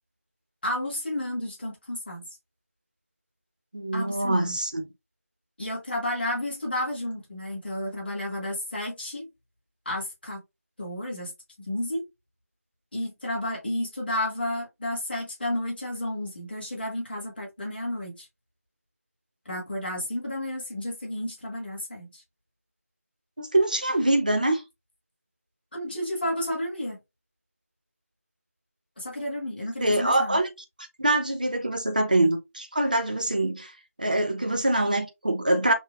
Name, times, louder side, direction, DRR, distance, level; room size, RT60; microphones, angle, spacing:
voice 1, 0.6-2.3 3.9-4.6 5.6-9.3 9.8-10.4 10.8-12.0 12.9-18.3 19.4-22.2 25.7-27.0 29.0-30.4, left 1 dB, 35° left, 1.3 m, -32 dB
voice 2, 3.7-4.9 23.4-24.6 29.8-30.5 31.0-33.7 34.0-35.7, right 1 dB, 30° right, 0.5 m, -24 dB
5.7 x 2.0 x 2.3 m
figure-of-eight pair, 175°, 9 cm